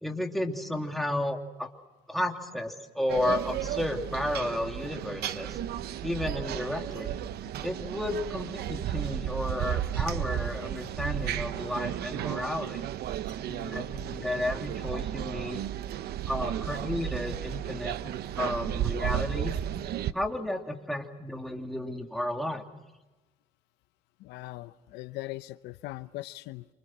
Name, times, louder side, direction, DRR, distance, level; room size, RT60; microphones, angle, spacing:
voice 1, 0.0-1.7 2.1-5.6 6.0-7.2 7.6-12.8 13.5-15.7 16.3-17.9 18.4-19.6 20.1-22.6, left 1 dB, ahead, 2 dB, 3.0 m, -32 dB
sound 1, 3.1-20.1, right 11 dB, 70° right, 1.0 m, -33 dB
voice 2, 24.2-26.7, left 18 dB, 90° left, 13 dB, 0.8 m, -40 dB
28.5 x 26.0 x 6.2 m, 1.1 s
cardioid pair, 110°, 17 cm